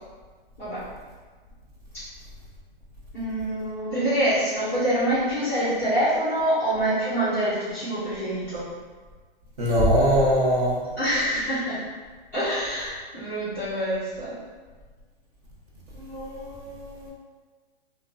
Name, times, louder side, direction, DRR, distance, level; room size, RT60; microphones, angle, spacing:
voice 1, 3.1-8.7 11.0-11.8 12.3-14.4, right 1 dB, 5° left, -17 dB, 0.3 m, -25 dB
voice 2, 9.6-10.8 15.9-17.1, equal, 40° right, -5 dB, 0.9 m, -22 dB
2.9 x 2.1 x 2.4 m, 1.4 s
hypercardioid pair, 145°, 30 cm